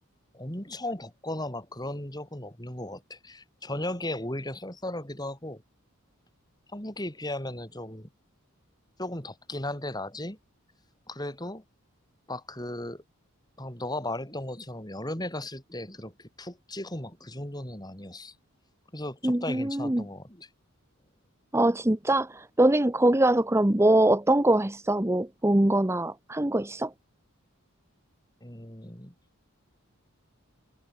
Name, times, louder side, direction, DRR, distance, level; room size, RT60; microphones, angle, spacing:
voice 1, 0.3-5.6 6.7-8.1 9.0-10.4 11.1-11.6 12.3-13.0 13.6-18.3 18.9-20.5 28.4-29.1, left 1 dB, 20° left, 7.0 m, -36 dB
voice 2, 19.2-20.1 21.5-26.9, right 1 dB, 10° right, 0.7 m, -23 dB
head